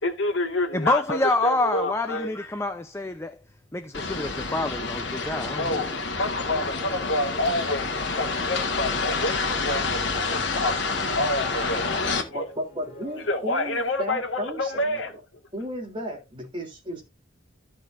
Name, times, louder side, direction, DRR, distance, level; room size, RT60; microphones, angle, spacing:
voice 1, 0.0-2.3 5.6-5.9 6.2-10.9 11.1-11.8 12.3-12.4 13.3-15.1, left 1 dB, 80° left, 2.1 m, -28 dB
voice 2, 0.7-3.4 3.7-5.8, left 2 dB, 15° left, 0.7 m, -27 dB
sound 1, 2.9-10.3 10.7-15.8, left 1 dB, 30° left, 4.4 m, -52 dB
sound 2, 3.9-12.2, left 4 dB, 65° left, 1.9 m, -28 dB
voice 3, 12.3-15.2 15.5-17.0, equal, 25° right, 3.5 m, -34 dB
14.5 x 5.9 x 2.6 m
head